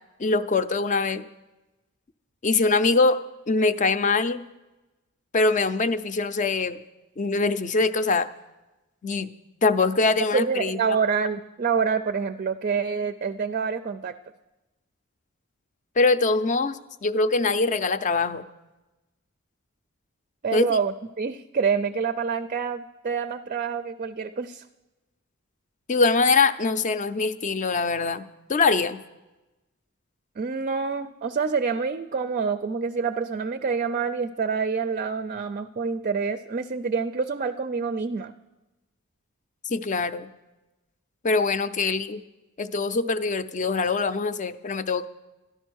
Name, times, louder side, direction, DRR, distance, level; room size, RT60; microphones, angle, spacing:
voice 1, 0.2-1.2 2.4-3.2 3.5-4.4 5.3-6.8 7.2-8.3 9.0-9.3 9.6-11.0 16.0-18.4 20.5-20.8 25.9-28.2 28.5-29.0 39.6-40.3 41.2-42.2 42.6-45.1, left 3 dB, 35° left, 12 dB, 0.5 m, -23 dB
voice 2, 10.2-14.1 20.4-24.7 30.4-38.3, right 5 dB, 40° right, 11 dB, 0.4 m, -27 dB
13.0 x 11.0 x 6.3 m, 1.1 s
head